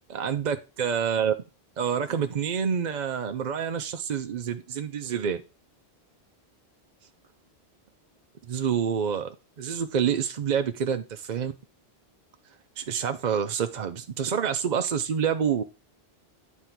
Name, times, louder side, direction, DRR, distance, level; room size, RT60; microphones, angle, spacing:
voice 1, 0.1-1.3 1.8-5.4 8.5-11.5 12.8-15.6, right 7 dB, 50° right, 7 dB, 0.6 m, -27 dB
9.5 x 3.6 x 5.8 m, 0.30 s
omnidirectional pair, 1.1 m